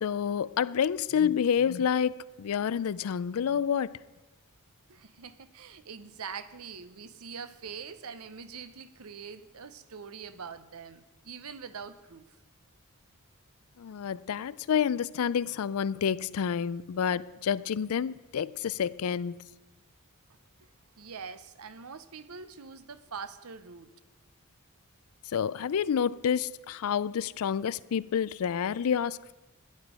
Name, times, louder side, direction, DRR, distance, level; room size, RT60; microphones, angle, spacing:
voice 1, 0.0-4.0 13.8-19.4 25.3-29.3, left 7 dB, 70° left, 0.4 m, -29 dB
voice 2, 4.9-12.4 20.6-20.7 21.0-23.9, right 6 dB, 75° right, 0.7 m, -44 dB
13.5 x 10.5 x 5.0 m
head